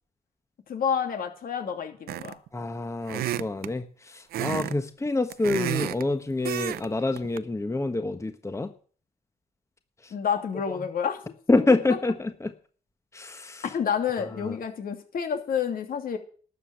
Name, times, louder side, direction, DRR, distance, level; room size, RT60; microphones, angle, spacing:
voice 1, 0.7-2.4 10.1-11.2 13.7-16.2, left 7 dB, 70° left, 5 dB, 2.9 m, -29 dB
sound 1, 2.1-2.5 3.1-3.7 4.3-4.7 5.1-6.0 6.4-6.9 7.2-7.4, right 13 dB, 90° right, 0.6 m, -30 dB
voice 2, 2.5-8.7 10.0-10.1 10.7-10.8 11.5-12.5 13.1-13.7 14.4-14.6, left 2 dB, 20° left, 8 dB, 1.3 m, -27 dB
12.5 x 7.8 x 8.8 m, 0.43 s
cardioid pair, 75°, 16 cm